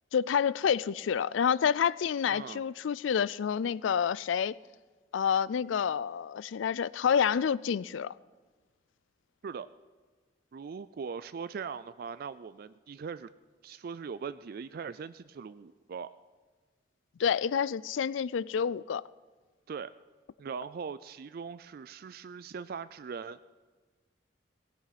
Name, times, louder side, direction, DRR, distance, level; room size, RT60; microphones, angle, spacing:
voice 1, 0.1-4.5 5.1-8.1 17.2-19.0, left 7 dB, 75° left, 0.4 m, -28 dB
voice 2, 2.3-2.7 9.4-9.7 10.5-13.3 13.6-16.1 19.7-19.9 20.4-23.4, right 6 dB, 50° right, 0.3 m, -40 dB
18.0 x 16.5 x 4.1 m
head